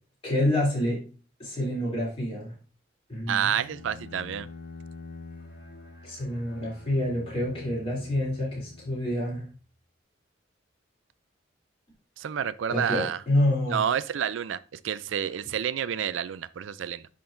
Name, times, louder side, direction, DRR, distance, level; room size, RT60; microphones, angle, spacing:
voice 1, 0.2-1.0 1.4-2.5 3.1-3.6 6.0-9.5 12.7-13.8, left 1 dB, 30° left, 3.2 m, -27 dB
voice 2, 3.3-4.5 12.2-13.2 13.7-17.1, right 8 dB, 85° right, 0.4 m, -29 dB
Bowed string instrument, 3.6-9.4, left 3 dB, 55° left, 2.0 m, -46 dB
10.0 x 3.7 x 2.6 m
head